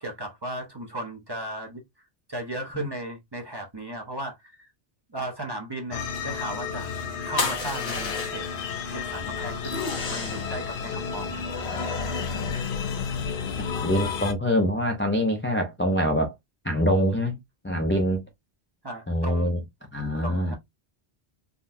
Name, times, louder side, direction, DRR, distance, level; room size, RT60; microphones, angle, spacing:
voice 1, 0.0-1.8 2.3-4.7 5.1-8.5 8.9-11.5 12.1-12.3 18.8-19.6 20.2-20.5, right 1 dB, 30° right, 0.6 m, -36 dB
sound 1, 5.9-14.3, left 6 dB, 60° left, 0.7 m, -31 dB
sound 2, 7.4-8.6 9.7-10.6 11.5-13.2, left 3 dB, 85° left, 1.3 m, -33 dB
voice 2, 13.8-16.3 16.6-17.4 17.6-18.2 19.1-19.6 19.9-20.5, equal, 20° left, 0.3 m, -24 dB
3.6 x 2.2 x 2.5 m
omnidirectional pair, 1.1 m